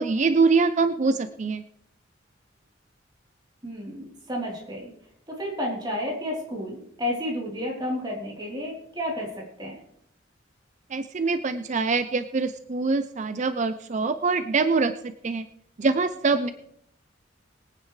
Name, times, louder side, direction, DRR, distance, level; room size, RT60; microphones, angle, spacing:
voice 1, 0.0-1.6 10.9-15.5 15.8-16.5, right 4 dB, 40° right, 11 dB, 0.5 m, -24 dB
voice 2, 3.6-4.9 5.3-9.8, left 1 dB, 25° right, -3 dB, 3.4 m, -31 dB
22.0 x 9.5 x 3.2 m, 0.72 s
head